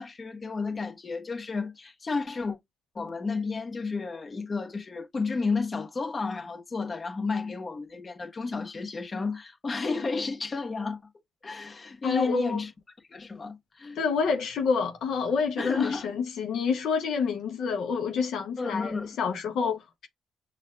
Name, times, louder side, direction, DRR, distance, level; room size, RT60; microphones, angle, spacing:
voice 1, 0.0-2.6 2.9-11.0 11.4-12.7 13.1-14.0 15.6-16.1 18.6-19.2, left 4 dB, 35° left, 1.3 m, -32 dB
voice 2, 12.0-12.6 13.9-20.1, left 5 dB, 75° left, 0.8 m, -28 dB
6.3 x 2.5 x 2.3 m
cardioid pair, 90°, 0 cm